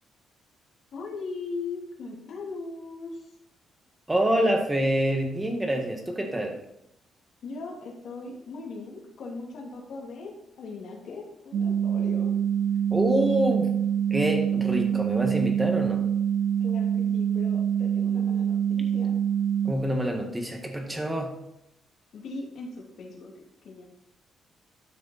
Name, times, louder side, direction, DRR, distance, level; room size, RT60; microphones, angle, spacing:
voice 1, 0.9-3.3 7.4-12.3 16.6-19.2 20.9-21.0 22.1-23.3 23.6-23.9, left 3 dB, 60° left, -1 dB, 2.8 m, -39 dB
voice 2, 4.1-6.6 12.9-13.7 14.1-16.0 19.6-21.4, right 1 dB, 10° right, 3 dB, 1.7 m, -26 dB
sound 1, 11.5-19.7, right 8 dB, 60° right, 0.4 m, -25 dB
12.5 x 6.4 x 4.2 m, 0.79 s
cardioid pair, 160°, 0 cm